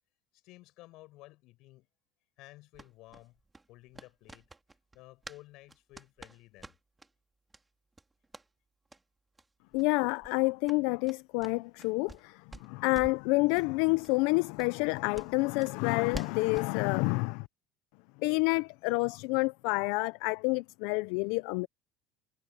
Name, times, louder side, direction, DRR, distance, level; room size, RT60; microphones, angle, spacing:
voice 1, 0.3-1.9 2.4-3.4 3.7-4.5 4.9-6.7, left 19 dB, 50° left, 7.6 m, -54 dB
sound 1, 2.7-5.4 5.7-7.1 7.5-7.6 7.9-8.5 8.9-9.0 9.3-9.5 9.7-9.9 10.2-12.2 12.5-13.3 13.5-13.7 14.0-14.1 14.6-16.7, right 3 dB, 10° right, 2.4 m, -49 dB
voice 2, 9.7-17.5 18.2-21.7, left 26 dB, 70° left, 0.3 m, -28 dB
cardioid pair, 170°, 0 cm